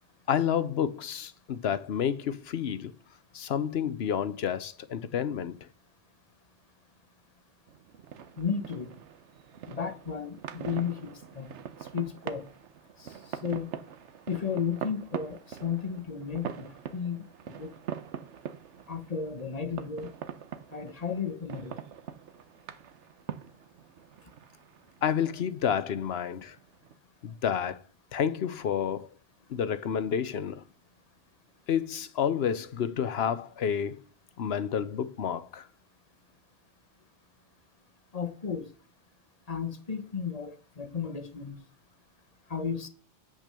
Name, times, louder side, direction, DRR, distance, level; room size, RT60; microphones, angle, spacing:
voice 1, 0.3-2.9 3.3-5.6 25.0-26.6 27.2-27.8 28.1-29.1 29.5-30.6 31.7-34.0 34.4-35.6, left 8 dB, 65° left, 0.9 m, -29 dB
sound 1, 7.7-27.0, right 8 dB, 85° right, 1.1 m, -43 dB
voice 2, 8.4-8.9 9.7-11.5 11.8-12.5 13.0-13.7 14.3-17.7 18.9-20.1 20.7-21.8 38.1-38.7 39.5-41.6 42.5-42.9, left 6 dB, 35° left, 1.0 m, -34 dB
8.1 x 6.1 x 6.7 m
omnidirectional pair, 1.2 m